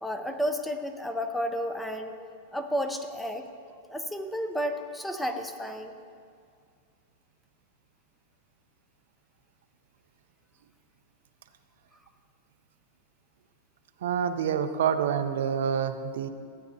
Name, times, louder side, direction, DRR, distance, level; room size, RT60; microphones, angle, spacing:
voice 1, 0.0-2.1 2.5-3.5 3.9-5.9, equal, 5° left, 7 dB, 0.6 m, -32 dB
voice 2, 14.0-16.3, right 8 dB, 80° right, 9 dB, 0.5 m, -27 dB
15.5 x 8.4 x 2.7 m, 2.2 s
supercardioid pair, 140°, 0 cm